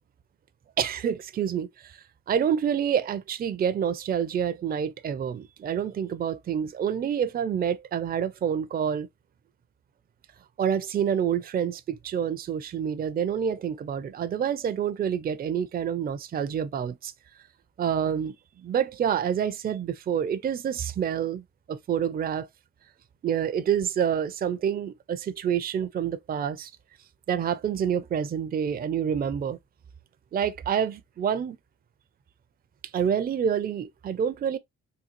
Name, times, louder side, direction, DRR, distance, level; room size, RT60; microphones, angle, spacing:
voice 1, 0.8-2.0 2.3-9.1 10.6-17.1 17.8-22.5 23.2-26.7 27.3-29.6 30.3-31.6 32.9-34.6, right 8 dB, 30° right, 0.4 m, -27 dB
3.8 x 2.3 x 2.8 m
cardioid pair, 90°, 30 cm